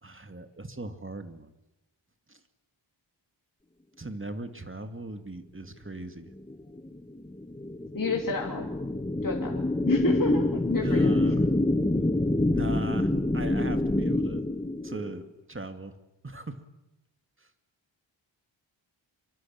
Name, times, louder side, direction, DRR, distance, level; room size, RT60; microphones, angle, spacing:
voice 1, 0.0-1.5 2.3-2.4 4.0-6.3 10.8-11.6 11.9-14.5 14.8-15.2 15.5-15.9 16.2-16.6 17.4-17.5, right 2 dB, 25° right, 8 dB, 2.2 m, -39 dB
sound 1, 6.5-15.2, left 2 dB, 10° left, 1.1 m, -27 dB
voice 2, 7.9-8.7 9.2-11.4, left 3 dB, 45° left, 1 dB, 3.0 m, -30 dB
25.5 x 23.5 x 8.8 m, 0.93 s
wide cardioid pair, 70°, 47 cm